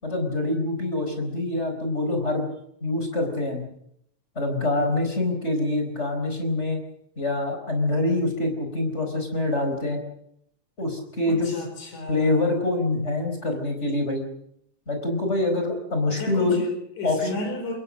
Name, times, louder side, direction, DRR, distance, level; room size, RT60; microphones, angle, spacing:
voice 1, 0.0-2.4 2.8-3.6 4.3-6.8 7.2-10.0 10.8-11.5 12.1-14.2 14.9-16.6 17.0-17.4, left 2 dB, 20° left, 4 dB, 4.8 m, -25 dB
voice 2, 11.3-12.5 16.1-17.8, left 2 dB, 80° left, 4 dB, 6.2 m, -33 dB
24.5 x 21.0 x 6.5 m, 0.74 s
omnidirectional pair, 3.4 m